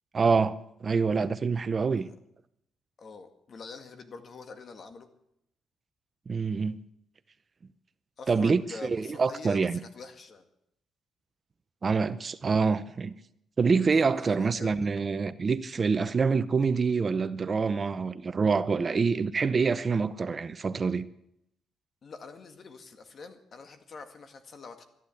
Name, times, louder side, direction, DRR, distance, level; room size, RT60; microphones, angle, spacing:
voice 1, 0.1-2.1 6.3-6.8 8.3-9.8 11.8-13.1 13.6-21.1, right 5 dB, 35° right, 0.7 m, -26 dB
voice 2, 3.0-5.1 8.2-10.5 14.1-14.8 22.0-24.8, left 4 dB, 50° left, 2.0 m, -45 dB
13.5 x 11.0 x 8.5 m
cardioid pair, 90°, 0 cm